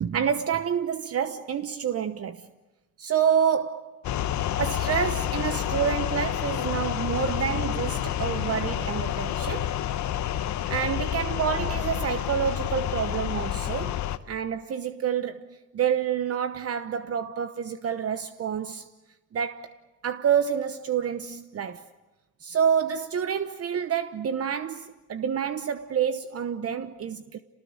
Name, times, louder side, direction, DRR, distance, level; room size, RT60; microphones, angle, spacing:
voice 1, 0.0-2.4 3.0-4.0 4.6-9.7 10.7-13.9 14.3-15.5 15.7-18.9 19.3-19.7 20.0-21.9 22.4-24.7 25.1-27.4, right 8 dB, 50° right, 1.0 m, -28 dB
sound 1, 4.0-14.2, left 11 dB, 70° left, 1.1 m, -29 dB
27.5 x 19.5 x 9.7 m
cardioid pair, 90°, 30 cm